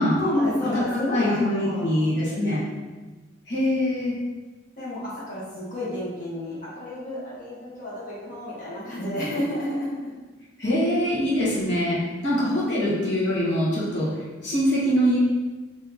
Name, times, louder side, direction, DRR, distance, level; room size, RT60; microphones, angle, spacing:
voice 1, 0.1-2.7 4.8-10.1, left 1 dB, 45° left, -8 dB, 1.5 m, -30 dB
voice 2, 0.7-2.6 3.5-4.1 10.6-14.1 14.4-15.2, equal, 65° left, -8 dB, 1.5 m, -23 dB
3.8 x 3.1 x 3.0 m, 1.2 s
head